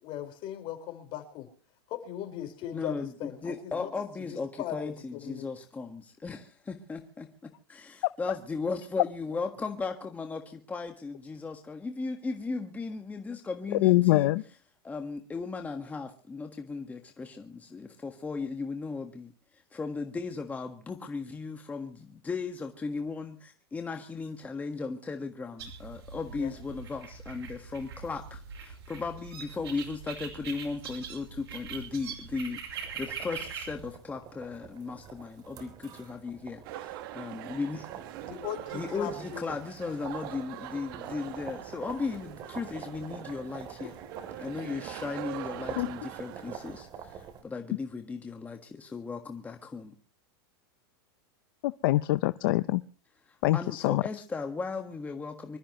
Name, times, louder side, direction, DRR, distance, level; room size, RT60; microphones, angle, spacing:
voice 1, 0.0-1.5 1.9-3.9 4.2-5.5 26.4-26.6 38.2-39.6, left 12 dB, 40° left, 4 dB, 4.8 m, -39 dB
voice 2, 2.7-7.3 7.7-14.3 14.8-19.3 19.7-37.9 38.7-44.0 44.4-49.9 53.5-55.6, left 4 dB, 10° left, 4 dB, 1.6 m, -36 dB
voice 3, 13.8-14.4 45.7-45.9 51.6-52.8 53.4-54.0, left 18 dB, 60° left, 14 dB, 0.6 m, -24 dB
sound 1, 25.6-33.9, right 6 dB, 85° right, 5.2 m, -42 dB
sound 2, 32.7-47.4, right 7 dB, 30° right, 3.1 m, -46 dB
sound 3, 36.6-46.8, right 15 dB, 60° right, 1.6 m, -44 dB
26.0 x 13.5 x 3.1 m, 0.37 s
supercardioid pair, 140°, 13 cm